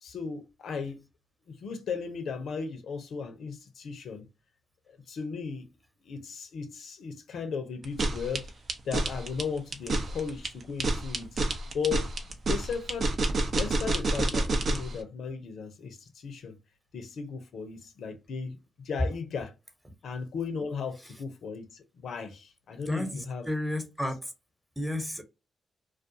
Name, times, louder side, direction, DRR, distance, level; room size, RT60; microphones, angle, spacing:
voice 1, 0.0-1.0 1.5-4.3 4.9-5.7 6.0-8.5 8.8-11.4 11.7-13.1 13.6-16.6 16.9-19.5 20.0-23.5, left 5 dB, 70° left, 0.5 m, -36 dB
sound 1, 7.8-14.9, right 2 dB, 60° right, 0.6 m, -28 dB
voice 2, 22.8-24.3 24.8-25.2, left 1 dB, 10° right, 0.9 m, -32 dB
2.3 x 2.3 x 2.6 m
hypercardioid pair, 40°, 0 cm